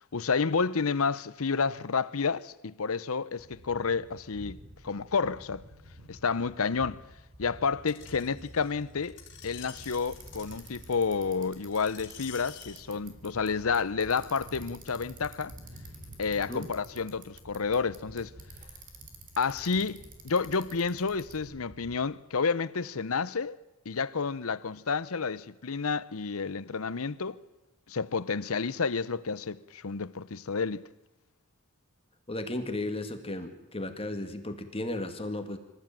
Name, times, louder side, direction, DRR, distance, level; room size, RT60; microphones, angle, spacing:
voice 1, 0.1-5.6 6.1-7.0 7.4-9.2 9.4-15.5 16.2-18.3 19.4-23.6 23.8-27.4 27.9-30.8, left 5 dB, 70° left, 0.8 m, -30 dB
sound 1, 3.4-22.0, equal, 60° right, 4.2 m, -51 dB
Screech, 7.9-12.8 13.5-13.6, left 8 dB, 55° left, 4.0 m, -49 dB
Bicycle, 9.7-21.4, right 4 dB, 40° right, 3.6 m, -53 dB
voice 2, 32.3-35.6, left 1 dB, 25° left, 2.1 m, -35 dB
26.0 x 14.5 x 9.0 m
head